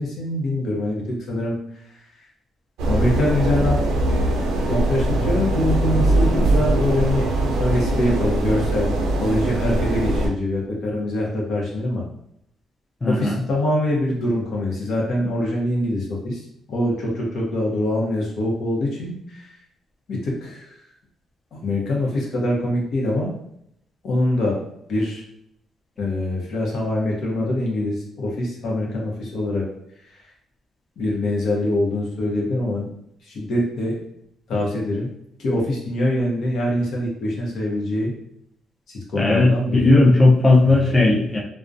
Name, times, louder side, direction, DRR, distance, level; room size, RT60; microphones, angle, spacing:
voice 1, 0.0-1.6 2.9-3.8 4.1-8.9 9.2-12.0 13.1-16.4 16.7-19.5 20.1-20.8 21.5-23.3 24.0-24.6 24.9-25.2 26.0-29.6 30.1-30.2 31.0-32.9 33.2-34.0 34.5-35.1 35.4-38.1 38.9-39.9 40.6-41.0, left 1 dB, 70° left, -2 dB, 0.8 m, -24 dB
sound 1, 2.8-10.3, right 1 dB, 85° right, 0.4 m, -21 dB
voice 2, 13.0-13.4 39.2-41.4, left 2 dB, 20° left, -3 dB, 0.5 m, -16 dB
2.3 x 2.1 x 2.5 m, 0.74 s
cardioid pair, 90°, 0 cm